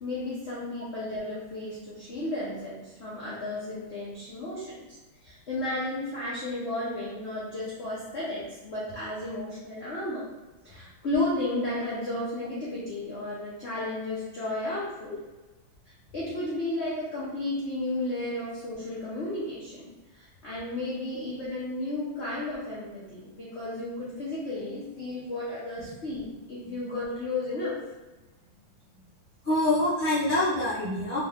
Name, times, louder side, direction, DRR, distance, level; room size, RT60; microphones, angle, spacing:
voice 1, 0.0-4.8 5.2-10.2 10.6-15.1 16.1-27.7, left 2 dB, 55° left, -8 dB, 0.7 m, -33 dB
voice 2, 29.4-31.2, left 1 dB, 35° right, -10 dB, 0.9 m, -26 dB
3.5 x 3.0 x 3.6 m, 1.1 s
omnidirectional pair, 2.4 m